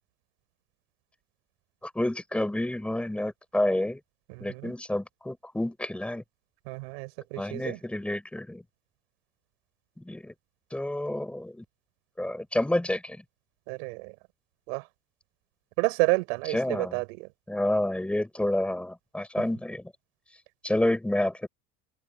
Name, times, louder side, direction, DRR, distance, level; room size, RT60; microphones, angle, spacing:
voice 1, 1.8-4.0 4.4-6.2 7.4-8.6 10.0-10.3 10.7-11.6 12.2-13.2 16.5-17.0 17.5-19.9 20.6-21.5, left 1 dB, 5° left, 7.3 m, -29 dB
voice 2, 4.3-4.7 6.6-7.8 13.7-14.1 14.7-14.9 15.8-17.3, right 31 dB, 80° right, 5.1 m, -30 dB
open air
cardioid pair, 155°, 30 cm